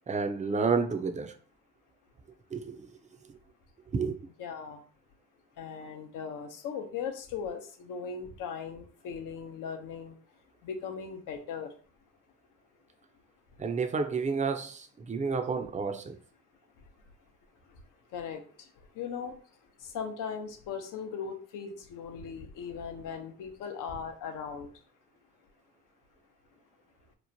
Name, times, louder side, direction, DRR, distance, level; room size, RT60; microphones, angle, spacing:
voice 1, 0.1-1.3 2.5-2.8 3.9-4.2 13.6-14.8 15.1-16.1, right 5 dB, 20° right, 0.4 m, -30 dB
voice 2, 4.4-4.8 5.6-10.2 10.6-11.7 18.1-18.4 19.0-19.3 19.8-24.7, left 6 dB, 65° left, 0.7 m, -38 dB
3.0 x 2.1 x 2.6 m
supercardioid pair, 65°, 34 cm